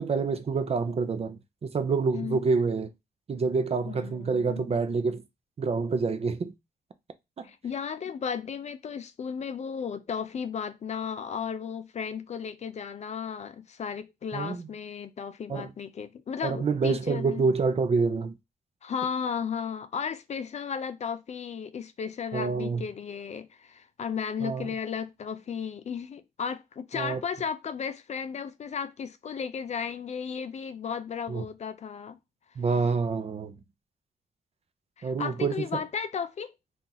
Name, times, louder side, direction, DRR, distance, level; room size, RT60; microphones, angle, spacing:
voice 1, 0.0-2.9 3.3-5.2 5.6-6.5 7.4-7.5 14.3-14.7 15.5-15.7 16.4-18.3 22.3-22.8 24.4-24.7 26.9-27.2 31.3-31.4 32.6-33.6 35.0-35.8, right 4 dB, 40° right, 0.5 m, -27 dB
voice 2, 2.1-2.5 3.8-4.8 7.4-17.5 18.8-32.2 35.0-36.5, left 7 dB, 45° left, 0.4 m, -34 dB
2.8 x 2.4 x 3.8 m
cardioid pair, 80°, 16 cm